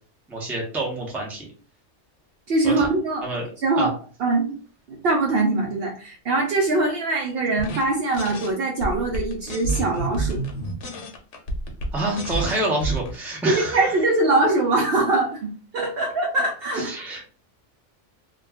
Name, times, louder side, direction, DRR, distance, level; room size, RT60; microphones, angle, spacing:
voice 1, 0.3-1.5 2.6-2.9 3.2-3.4 3.8-3.9 11.9-13.9 16.7-17.2, right 1 dB, ahead, -1 dB, 0.5 m, -27 dB
voice 2, 2.5-3.2 3.6-3.9 4.2-4.5 4.9-10.4 13.5-16.9, right 2 dB, 60° right, 0 dB, 0.7 m, -22 dB
sound 1, 7.6-7.9 8.1-8.5 8.8-13.2, right 2 dB, 65° left, 0.9 m, -29 dB
2.3 x 2.2 x 3.3 m, 0.39 s
omnidirectional pair, 1.3 m